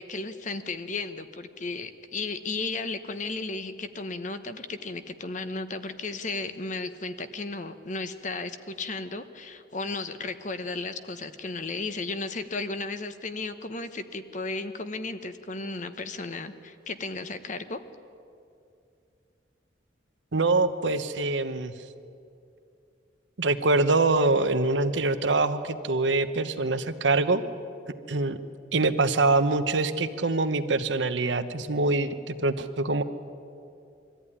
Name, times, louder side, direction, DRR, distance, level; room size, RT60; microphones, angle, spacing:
voice 1, 0.0-17.8, left 3 dB, 40° left, 10 dB, 1.0 m, -34 dB
voice 2, 20.3-21.7 23.4-27.4 28.1-28.4 28.7-33.0, right 3 dB, 75° right, 10 dB, 1.0 m, -24 dB
22.5 x 14.5 x 10.0 m, 2.5 s
head